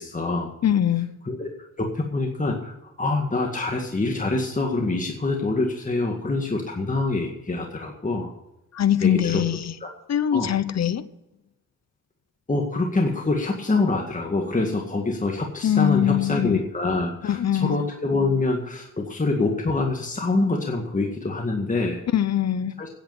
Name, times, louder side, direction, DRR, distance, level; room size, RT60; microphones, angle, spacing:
voice 1, 0.0-0.5 1.3-1.5 1.8-2.7 3.0-8.3 9.0-9.4 9.8-9.9 10.3-10.6 12.5-22.0 22.8-22.9, left 3 dB, 25° left, 1 dB, 2.0 m, -25 dB
voice 2, 0.6-1.1 8.7-9.7 10.1-11.0 15.6-16.6 17.2-17.8 22.1-22.7, left 10 dB, 50° left, 14 dB, 0.9 m, -22 dB
10.5 x 8.3 x 9.4 m, 0.91 s
cardioid pair, 85°, 33 cm